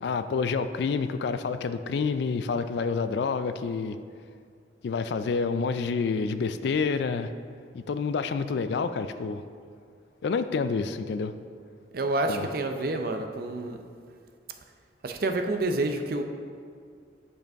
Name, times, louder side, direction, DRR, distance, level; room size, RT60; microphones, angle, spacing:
voice 1, 0.0-4.0 4.8-7.3 7.7-9.4 10.2-11.3 12.3-12.5, left 5 dB, 65° left, 11 dB, 0.3 m, -28 dB
voice 2, 11.9-13.8 15.0-16.2, right 2 dB, 50° right, 6 dB, 0.5 m, -28 dB
9.0 x 5.2 x 3.5 m, 2.1 s
head